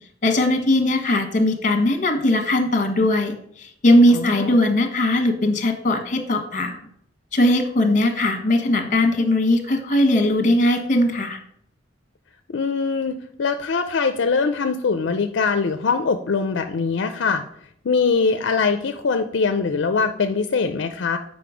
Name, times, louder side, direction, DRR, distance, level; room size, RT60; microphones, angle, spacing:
voice 1, 0.2-6.8 7.3-11.4, left 1 dB, 45° left, 7 dB, 1.2 m, -19 dB
voice 2, 4.1-4.5 12.5-17.4 17.8-21.2, left 4 dB, 70° left, 7 dB, 0.4 m, -22 dB
7.8 x 5.3 x 5.0 m, 0.70 s
head